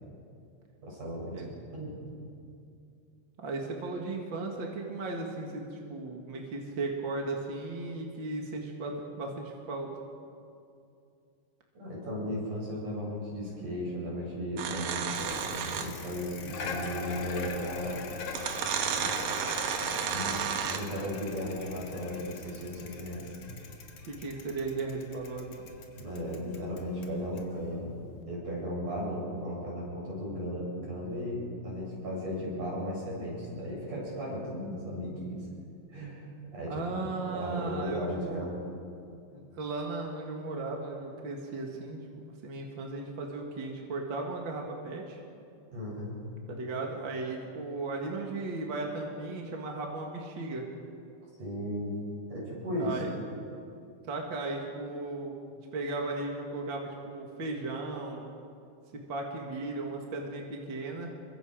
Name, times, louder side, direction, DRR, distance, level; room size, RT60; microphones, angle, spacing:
voice 1, 0.8-1.3 1.7-2.0 11.8-18.0 18.9-19.2 19.7-23.3 26.0-27.9 28.3-35.4 35.9-37.0 37.3-38.6 45.7-46.2 51.4-52.0 52.3-53.0, equal, 65° right, -4 dB, 9.4 m, -36 dB
voice 2, 3.4-9.9 24.1-25.7 36.7-38.5 39.3-42.0 42.4-45.2 46.5-50.6 52.8-53.1 54.0-55.3 55.7-58.3 58.9-61.1, right 3 dB, 40° right, 0 dB, 2.4 m, -36 dB
sound 1, 14.6-16.1 17.4-17.5 18.3-21.0, right 7 dB, 85° right, 3.0 m, -32 dB
Bicycle, 15.1-28.2, left 4 dB, 65° left, 3.1 m, -43 dB
28.0 x 23.5 x 5.1 m, 2.5 s
omnidirectional pair, 3.8 m